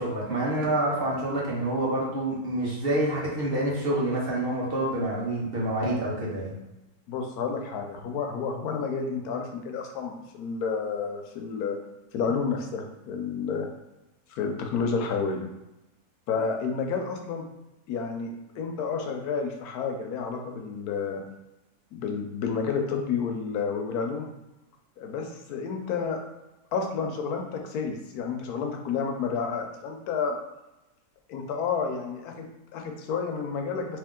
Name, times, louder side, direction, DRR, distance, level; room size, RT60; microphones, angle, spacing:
voice 1, 0.0-6.5, right 1 dB, 45° right, -5 dB, 1.1 m, -27 dB
voice 2, 7.1-11.8 12.1-13.7 14.3-15.5 16.3-17.5 17.9-21.2 21.9-24.3 25.0-26.2 26.7-30.4 31.3-34.0, left 5 dB, 90° left, 3 dB, 1.2 m, -30 dB
3.5 x 2.9 x 3.6 m, 0.95 s
omnidirectional pair, 1.6 m